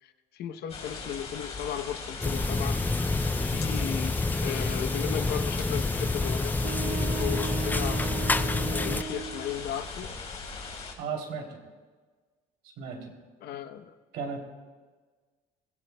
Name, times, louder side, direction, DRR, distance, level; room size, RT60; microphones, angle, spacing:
voice 1, 0.0-2.9 3.4-4.2 4.4-8.0 8.7-10.1 13.4-13.9, left 10 dB, 70° left, 0.9 m, -36 dB
sound 1, 0.7-10.9, left 4 dB, 40° left, 4.0 m, -40 dB
sound 2, 2.2-9.0, left 3 dB, 10° left, 0.4 m, -28 dB
sound 3, 6.6-9.6, right 10 dB, 50° right, 0.7 m, -37 dB
voice 2, 11.0-11.6 12.8-13.0 14.1-14.4, right 5 dB, 85° right, 3.1 m, -34 dB
23.5 x 16.5 x 2.3 m
cardioid pair, 110°, 17 cm